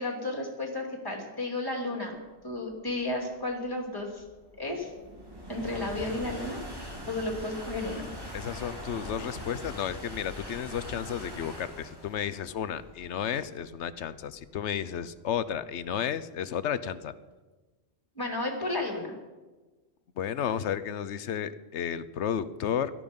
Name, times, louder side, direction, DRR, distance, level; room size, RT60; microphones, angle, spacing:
voice 1, 0.0-2.2 2.4-4.2 4.6-4.9 5.5-6.6 7.1-8.1 18.2-19.1, left 2 dB, 20° left, 1 dB, 3.1 m, -33 dB
sound 1, 2.5-15.8, equal, 20° right, 3.4 m, -42 dB
voice 2, 8.3-17.1 20.2-22.9, left 9 dB, 85° left, 15 dB, 1.1 m, -32 dB
17.0 x 13.0 x 5.4 m, 1.2 s
omnidirectional pair, 1.2 m